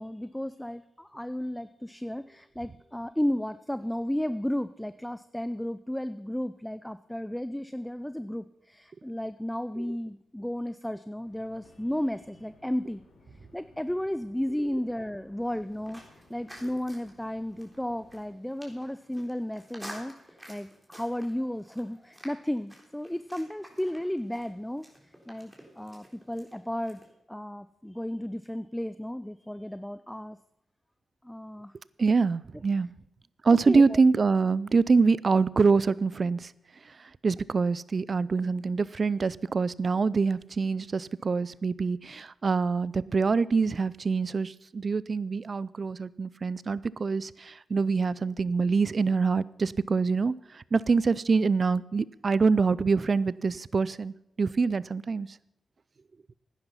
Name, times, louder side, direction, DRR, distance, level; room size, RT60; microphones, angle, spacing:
voice 1, 0.0-13.0 13.5-16.0 16.3-24.9 25.3-27.0 27.3-30.4 31.2-31.7 33.7-34.0, left 1 dB, 5° left, 13 dB, 0.5 m, -33 dB
sound 1, 11.2-18.2, left 3 dB, 85° left, 2.5 m, -60 dB
sound 2, 15.4-27.1, equal, 10° right, 3.7 m, -51 dB
voice 2, 32.0-32.9 33.4-36.5 37.2-55.3, right 4 dB, 50° right, 20 dB, 0.4 m, -25 dB
11.0 x 10.0 x 5.7 m, 0.85 s
cardioid pair, 50°, 0 cm